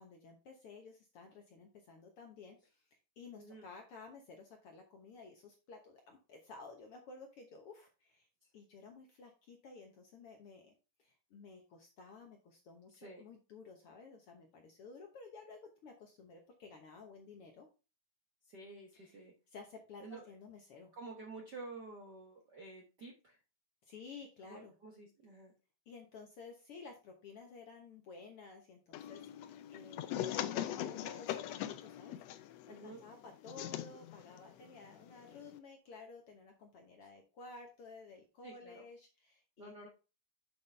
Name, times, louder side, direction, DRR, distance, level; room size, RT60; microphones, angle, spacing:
voice 1, 0.0-2.6 3.2-8.3 8.5-10.7 11.0-17.7 18.9-19.2 19.5-20.9 23.8-24.7 25.9-32.2 32.7-39.7, left 4 dB, 60° left, 3 dB, 1.6 m, -54 dB
voice 2, 3.3-3.7 8.4-8.5 12.9-13.2 18.4-19.3 20.0-20.3 20.9-23.4 24.4-25.5 32.7-33.0 38.4-38.8 39.6-39.9, right 3 dB, 60° right, 0 dB, 1.1 m, -50 dB
sound 1, 28.9-35.6, left 12 dB, 80° left, 1.5 m, -42 dB
7.2 x 6.3 x 3.3 m, 0.31 s
omnidirectional pair, 3.6 m